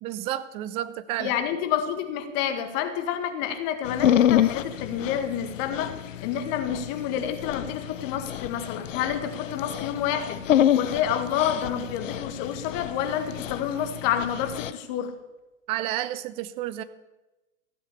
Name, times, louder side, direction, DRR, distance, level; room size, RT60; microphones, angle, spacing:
voice 1, 0.0-1.3 15.7-16.8, right 13 dB, 15° right, 14 dB, 0.3 m, -31 dB
voice 2, 1.2-5.9 6.2-10.4 10.7-15.2, left 9 dB, 40° left, 7 dB, 1.8 m, -29 dB
Dog, 3.9-14.7, left 11 dB, 70° left, 0.7 m, -27 dB
15.0 x 8.2 x 7.0 m, 1.0 s
figure-of-eight pair, 100°, 40 cm